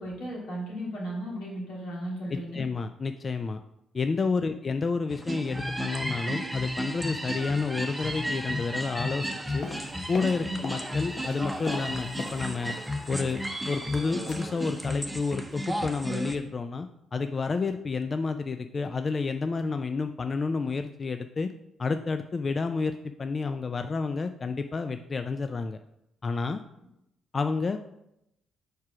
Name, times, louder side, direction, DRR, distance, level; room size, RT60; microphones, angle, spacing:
voice 1, 0.0-2.6 4.4-4.5 10.4-10.6, equal, 85° left, -5 dB, 2.7 m, -35 dB
voice 2, 2.3-3.6 3.9-9.7 10.1-12.8 13.1-21.5 21.8-22.9 23.2-25.8 26.2-26.6 27.3-27.8, left 4 dB, 35° left, 8 dB, 0.3 m, -30 dB
sound 1, 5.1-16.4, equal, 5° right, 0.8 m, -33 dB
sound 2, 9.6-10.9 11.1-12.9 13.2-14.0 14.3-14.5 14.8-15.0 15.3-15.5 15.8-15.9, left 3 dB, 55° left, 1.0 m, -41 dB
4.8 x 4.6 x 5.9 m, 0.83 s
cardioid pair, 90°, 0 cm